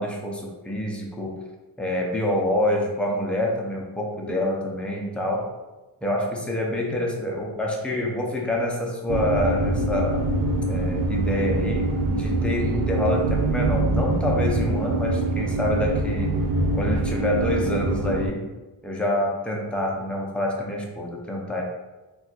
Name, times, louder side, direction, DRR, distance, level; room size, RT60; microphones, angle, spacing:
voice 1, 0.0-1.4 1.8-5.5 6.0-10.3 10.7-16.4 16.7-18.5 18.8-21.6, left 1 dB, 5° left, -2 dB, 0.4 m, -27 dB
sound 1, 9.1-18.3, right 2 dB, 60° right, 0.5 m, -24 dB
3.9 x 2.4 x 2.3 m, 1.1 s
cardioid pair, 120°, 41 cm